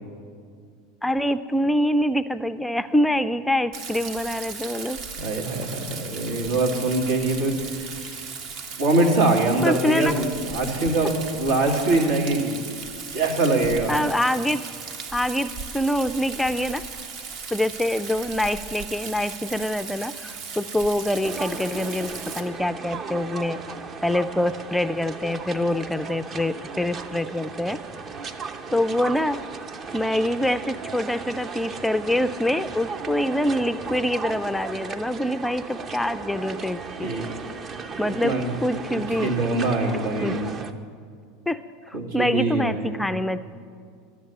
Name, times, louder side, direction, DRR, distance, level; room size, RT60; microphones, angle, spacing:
voice 1, 1.0-5.0 9.6-10.2 13.9-14.6 15.1-16.8 17.5-23.6 24.0-27.8 28.7-29.4 29.9-37.1 38.0-38.4 38.6-39.3 40.2-40.4 41.5-41.6 41.9-43.4, left 1 dB, 5° left, 12 dB, 0.4 m, -25 dB
Rain, 3.7-22.4, right 5 dB, 55° right, 1.3 m, -37 dB
voice 2, 5.1-8.2 8.8-12.6 13.1-14.0 37.0-37.3 38.2-38.5 39.0-40.6 41.9-43.0, right 2 dB, 75° right, -1 dB, 2.3 m, -23 dB
sound 1, 21.2-40.7, right 4 dB, 35° right, 0.8 m, -36 dB
12.0 x 7.3 x 8.6 m, 2.2 s
hypercardioid pair, 85°, 0 cm